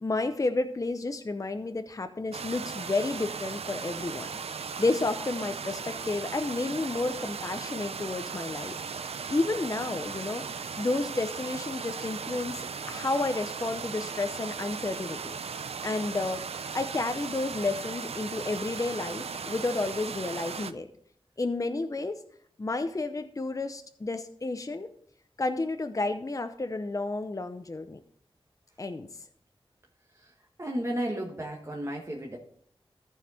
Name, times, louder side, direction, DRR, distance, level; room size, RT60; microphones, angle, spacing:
voice 1, 0.0-4.3 4.8-8.8 9.3-15.3 15.8-16.5 16.7-20.9 21.4-22.2 22.6-24.9 25.4-28.0 28.8-29.1, left 2 dB, 35° left, 8 dB, 0.7 m, -31 dB
sound 1, 2.3-20.7, right 6 dB, 85° right, 0.5 m, -37 dB
voice 2, 30.6-32.4, equal, 30° right, -1 dB, 1.5 m, -33 dB
14.0 x 4.8 x 4.3 m, 0.65 s
wide cardioid pair, 60°, 10 cm